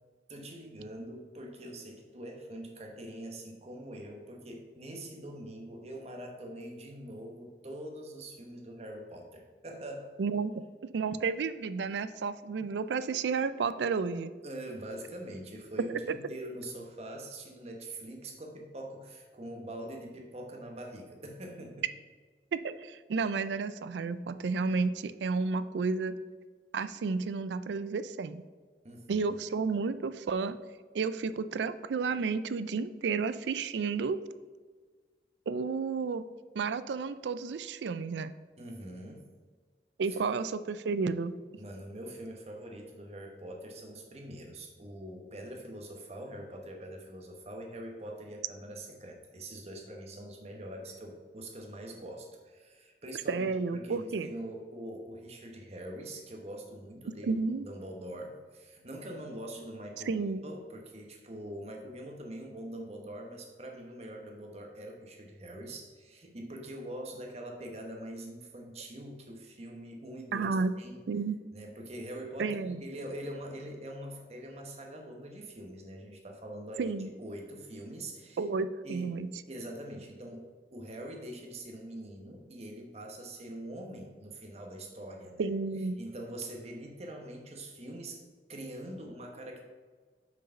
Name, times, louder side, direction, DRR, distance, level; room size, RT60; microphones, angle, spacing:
voice 1, 0.3-10.1 14.4-21.9 28.8-29.3 38.6-39.3 40.1-40.2 41.6-70.5 70.8-71.0 71.5-78.4 78.8-79.2 79.5-85.5 86.0-88.2 88.5-89.6, right 1 dB, 35° right, 2 dB, 1.0 m, -43 dB
voice 2, 10.2-10.5 10.9-14.3 15.9-16.2 22.5-26.2 26.7-28.4 29.1-30.6 30.9-34.2 35.5-36.2 36.5-38.3 40.0-41.4 53.3-54.3 57.2-57.7 60.1-60.4 70.3-70.7 71.1-71.4 72.4-72.8 76.8-77.1 78.4-79.3 85.4-86.0, right 4 dB, 80° right, 13 dB, 0.4 m, -31 dB
6.0 x 4.7 x 5.5 m, 1.5 s
head